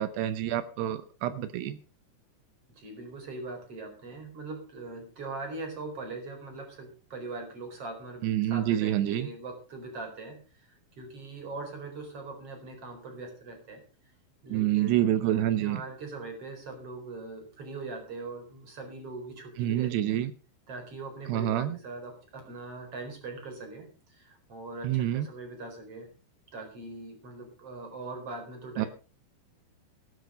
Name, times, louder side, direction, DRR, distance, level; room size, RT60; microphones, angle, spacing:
voice 1, 0.0-1.8 8.2-9.3 14.5-15.8 19.6-20.3 21.3-21.8 24.8-25.3 28.8-28.9, right 12 dB, 80° right, 13 dB, 2.8 m, -27 dB
voice 2, 2.7-13.8 14.4-20.2 20.7-26.1 26.5-28.9, right 3 dB, 35° right, 4 dB, 5.1 m, -41 dB
15.0 x 11.5 x 5.0 m, 0.35 s
omnidirectional pair, 4.9 m